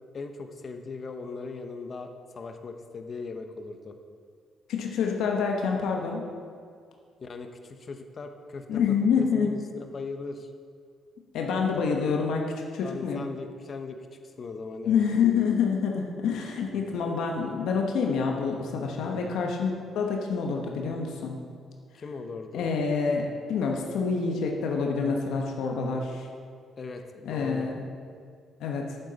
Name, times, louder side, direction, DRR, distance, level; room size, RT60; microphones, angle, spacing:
voice 1, 0.1-3.9 7.2-10.5 12.8-15.0 16.7-16.8 19.0-19.4 21.9-22.7 26.8-27.7, left 4 dB, 45° left, 6 dB, 0.8 m, -39 dB
voice 2, 4.7-6.2 8.7-9.5 11.3-12.5 12.7-13.2 14.8-21.4 22.5-26.3 27.2-27.7 28.6-29.0, left 5 dB, 80° left, 1 dB, 0.9 m, -27 dB
8.1 x 7.5 x 4.0 m, 2.2 s
cardioid pair, 90°, 0 cm